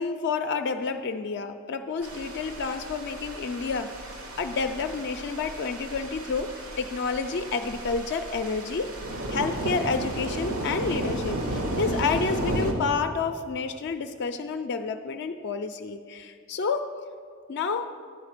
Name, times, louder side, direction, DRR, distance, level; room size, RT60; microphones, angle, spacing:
voice 1, 0.0-8.9 9.3-16.8 17.5-17.9, left 4 dB, 55° left, 6 dB, 0.4 m, -29 dB
sound 1, 2.0-12.7, right 1 dB, 85° right, 1.1 m, -33 dB
10.5 x 4.2 x 7.3 m, 2.1 s
head